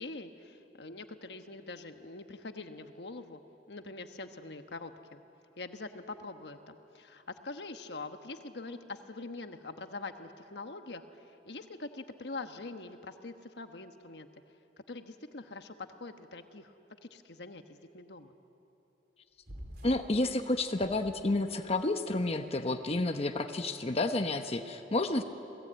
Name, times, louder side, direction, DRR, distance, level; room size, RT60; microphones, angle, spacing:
voice 1, 0.0-3.4 3.7-5.2 5.6-14.3 14.9-16.7 17.0-18.3, left 3 dB, 70° left, 7 dB, 1.3 m, -44 dB
sound 1, 19.5-20.2 20.7-21.7, equal, 65° right, 3.8 m, -47 dB
voice 2, 19.8-25.2, left 2 dB, 35° left, 6 dB, 0.9 m, -30 dB
28.0 x 18.5 x 8.9 m, 3.0 s
head